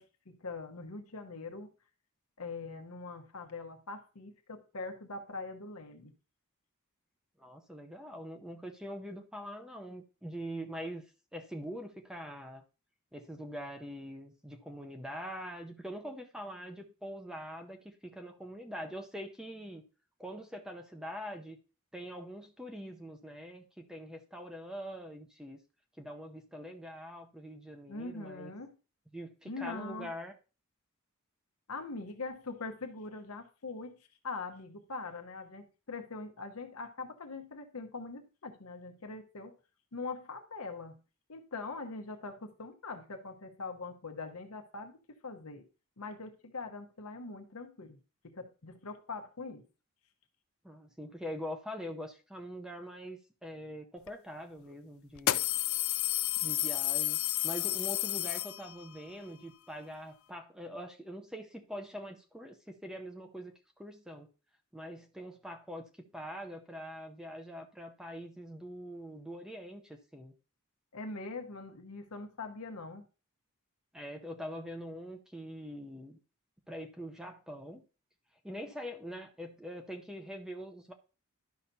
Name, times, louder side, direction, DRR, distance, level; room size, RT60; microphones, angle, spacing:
voice 1, 0.0-1.7 2.4-6.1 27.9-28.7 29.4-30.1 31.7-34.0 34.2-39.5 39.9-41.0 41.3-45.7 46.0-48.0 48.2-49.7 70.9-73.1, left 3 dB, 85° left, 1.0 m, -42 dB
voice 2, 7.4-11.0 11.3-12.6 13.1-19.8 20.2-21.6 21.9-25.6 26.0-28.5 29.1-30.3 50.6-55.4 56.4-57.2 57.4-64.3 64.7-70.3 73.9-76.2 76.7-77.8 78.4-80.9, equal, 5° right, 0.6 m, -43 dB
sound 1, 54.1-54.2 55.2-59.0, left 16 dB, 65° left, 0.4 m, -31 dB
11.5 x 5.7 x 2.7 m
head